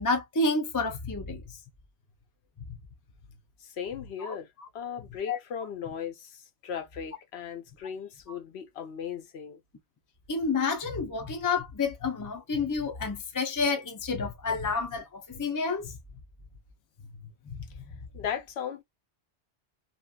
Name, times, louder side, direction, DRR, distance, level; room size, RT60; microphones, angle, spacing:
voice 1, 0.0-1.4 4.2-4.4 5.3-5.4 10.3-15.9 17.5-17.6, left 4 dB, 25° left, 0.5 m, -29 dB
voice 2, 3.6-4.5 4.7-9.6 18.1-18.8, left 8 dB, 70° left, 0.9 m, -37 dB
2.8 x 2.3 x 2.3 m
omnidirectional pair, 1.1 m